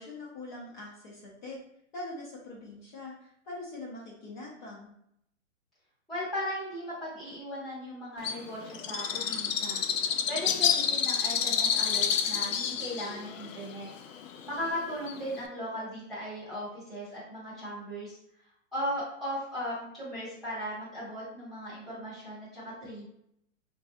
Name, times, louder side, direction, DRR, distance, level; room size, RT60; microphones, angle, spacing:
voice 1, 0.0-1.6 1.9-4.9, left 2 dB, 40° left, -4 dB, 0.7 m, -43 dB
voice 2, 6.1-9.8 10.3-13.9 14.4-18.1 18.7-23.0, equal, ahead, -14 dB, 0.8 m, -37 dB
Bird, 8.2-15.5, left 7 dB, 85° left, 0.5 m, -29 dB
3.5 x 2.3 x 2.8 m, 0.74 s
hypercardioid pair, 170°, 38 cm